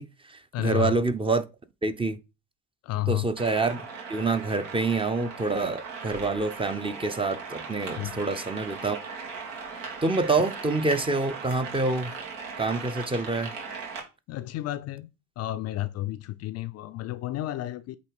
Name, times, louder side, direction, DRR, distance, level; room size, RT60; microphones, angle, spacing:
voice 1, 0.0-1.5 1.8-2.2 3.1-9.0 10.0-12.1 12.6-13.5, right 3 dB, 15° right, 0.6 m, -27 dB
voice 2, 0.5-1.0 2.8-3.3 8.0-8.1 14.3-15.1 15.4-18.0, left 15 dB, 45° left, 0.5 m, -31 dB
sound 1, 3.4-14.0, right 5 dB, 85° right, 2.2 m, -39 dB
8.4 x 2.9 x 4.7 m
hypercardioid pair, 70°, 37 cm